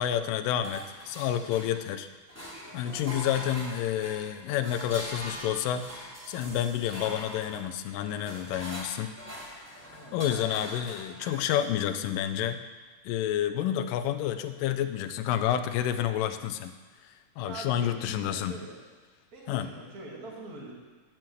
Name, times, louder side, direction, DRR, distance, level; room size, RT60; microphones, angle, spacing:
voice 1, 0.0-2.1 2.7-9.1 9.7-9.8 10.1-12.6 13.0-16.8 17.0-18.6 19.5-19.7, left 10 dB, 85° left, 9 dB, 2.2 m, -29 dB
sound 1, 0.6-2.0 2.3-11.7, equal, 5° right, 1.9 m, -42 dB
voice 2, 9.9-10.2 17.4-18.8 19.3-20.7, right 2 dB, 35° right, -2 dB, 1.9 m, -43 dB
11.5 x 4.5 x 7.6 m, 1.4 s
omnidirectional pair, 3.9 m